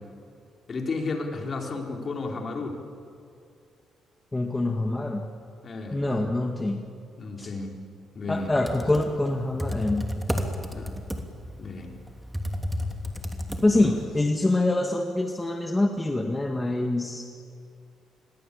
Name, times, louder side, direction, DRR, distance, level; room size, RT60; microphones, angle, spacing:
voice 1, 0.7-2.8 5.6-6.0 7.2-7.7 8.1-8.5 10.7-10.9 11.6-11.9 13.8-13.9, left 3 dB, 45° left, 2 dB, 4.2 m, -32 dB
voice 2, 4.3-5.2 5.9-6.8 7.4-7.5 8.3-10.2 13.6-17.3, left 2 dB, 15° left, 3 dB, 1.8 m, -25 dB
Computer keyboard, 8.4-14.0, equal, 5° right, 3.0 m, -32 dB
27.5 x 22.0 x 8.6 m, 2.4 s
cardioid pair, 90°, 0 cm